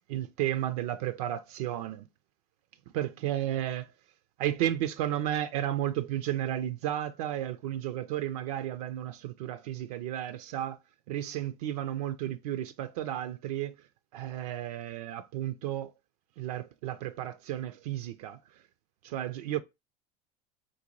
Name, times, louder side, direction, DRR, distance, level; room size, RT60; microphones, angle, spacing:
voice 1, 0.1-2.1 2.9-3.9 4.4-10.8 11.1-13.7 14.1-15.9 16.4-18.4 19.0-19.6, right 12 dB, 75° right, 0.4 m, -33 dB
3.9 x 2.2 x 3.0 m
supercardioid pair, 95°, 19 cm